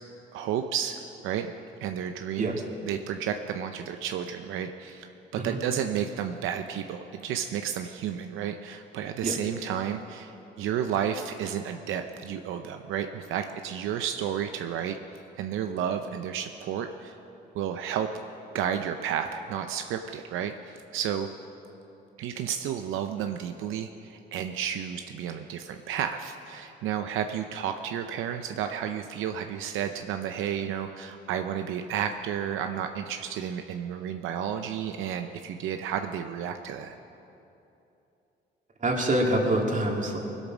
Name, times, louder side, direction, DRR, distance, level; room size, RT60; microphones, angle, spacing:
voice 1, 0.3-1.5 1.8-5.1 5.4-10.3 10.6-15.0 15.4-17.2 17.5-18.1 18.5-21.3 22.2-36.9, right 9 dB, 90° right, 6 dB, 0.6 m, -32 dB
voice 2, 38.8-40.2, right 1 dB, 40° right, 0 dB, 2.4 m, -25 dB
20.5 x 8.2 x 6.1 m, 2.9 s
cardioid pair, 90°, 20 cm